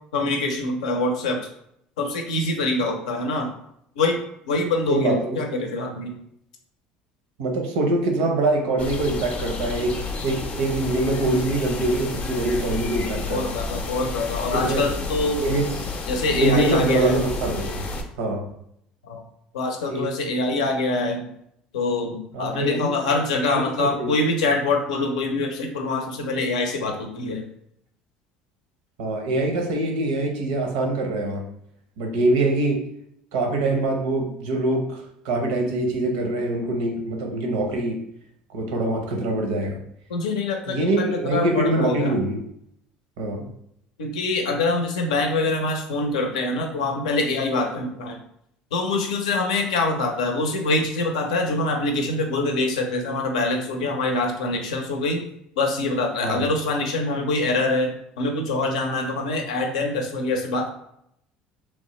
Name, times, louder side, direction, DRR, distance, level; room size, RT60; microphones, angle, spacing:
voice 1, 0.1-1.4 2.0-3.5 4.0-4.2 4.4-6.1 13.3-15.4 16.1-17.2 19.0-19.2 19.5-21.3 21.7-27.4 40.1-41.0 41.3-42.1 44.0-48.2 48.7-55.2 55.6-60.7, left 2 dB, 90° left, 3 dB, 0.6 m, -24 dB
voice 2, 4.9-5.4 7.4-13.6 14.6-14.9 15.4-15.8 16.3-17.9 18.2-18.5 19.9-20.1 22.3-23.0 23.5-24.1 29.0-31.4 32.0-32.8 33.3-38.0 38.5-39.8 40.7-42.4 43.2-43.5 56.2-56.4, right 2 dB, 80° right, 3 dB, 0.7 m, -24 dB
sound 1, 8.8-18.0, left 3 dB, 40° left, 0.5 m, -31 dB
3.0 x 2.1 x 3.0 m, 0.73 s
hypercardioid pair, 80°, 4 cm